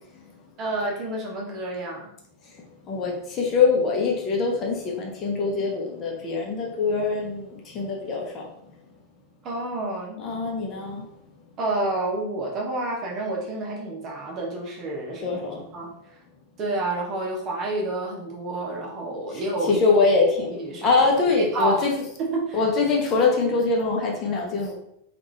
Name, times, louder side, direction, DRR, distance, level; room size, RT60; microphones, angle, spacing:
voice 1, 0.6-2.1 9.4-10.2 11.6-15.4 15.7-15.9 16.6-19.8 20.5-21.0 21.4-21.8 22.2-22.6, right 2 dB, 30° right, -2 dB, 1.0 m, -29 dB
voice 2, 2.9-8.5 10.2-11.1 15.2-15.6 19.3-19.4 19.7-21.9 22.5-24.7, left 4 dB, 30° left, -1 dB, 0.8 m, -23 dB
3.6 x 2.5 x 3.2 m, 0.75 s
figure-of-eight pair, 90°, 0 cm